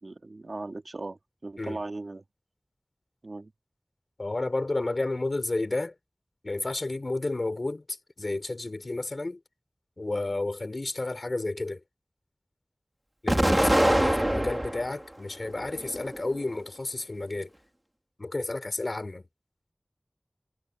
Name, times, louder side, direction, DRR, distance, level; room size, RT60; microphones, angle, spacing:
voice 1, 0.0-2.2 3.2-3.5, right 2 dB, 80° right, 3.0 m, -38 dB
voice 2, 4.2-5.9 6.4-9.4 10.0-11.8 13.2-17.5 18.2-19.2, left 2 dB, 70° left, 4.4 m, -31 dB
Explosion, 13.3-14.9 15.4-16.3, right 1 dB, 20° right, 2.4 m, -24 dB
wide cardioid pair, 45°, 0 cm